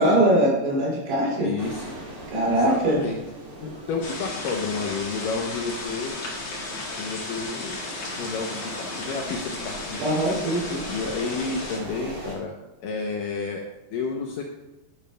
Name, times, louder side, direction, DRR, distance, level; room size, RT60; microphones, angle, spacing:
voice 1, 0.0-1.5 2.3-3.0 10.0-10.8, right 1 dB, 80° right, -4 dB, 5.2 m, -22 dB
voice 2, 1.4-2.0 2.5-3.1 3.6-6.2 7.0-7.8 8.2-10.2 10.9-12.5 12.8-13.6 13.9-14.4, left 5 dB, 80° left, 1 dB, 2.0 m, -30 dB
sound 1, 1.6-12.3, right 1 dB, 30° right, 2.4 m, -41 dB
sound 2, 4.0-11.8, left 2 dB, 50° left, 2.3 m, -35 dB
11.5 x 10.0 x 2.2 m, 1.0 s
omnidirectional pair, 4.7 m